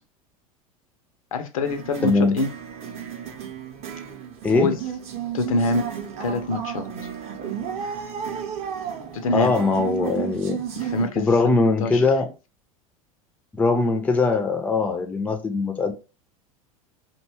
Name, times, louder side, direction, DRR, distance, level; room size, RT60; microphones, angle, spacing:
voice 1, 1.3-2.5 4.5-4.8 5.3-5.8 6.2-6.9 9.1-9.5 10.8-11.3 11.8-12.0, left 2 dB, 70° left, 0.5 m, -25 dB
sound 1, 1.6-11.1, right 8 dB, 35° right, 0.6 m, -33 dB
voice 2, 2.0-2.3 4.4-4.8 9.3-10.6 11.2-12.3 13.5-15.9, left 3 dB, 10° left, 0.4 m, -21 dB
2.6 x 2.2 x 3.0 m
figure-of-eight pair, 80°, 19 cm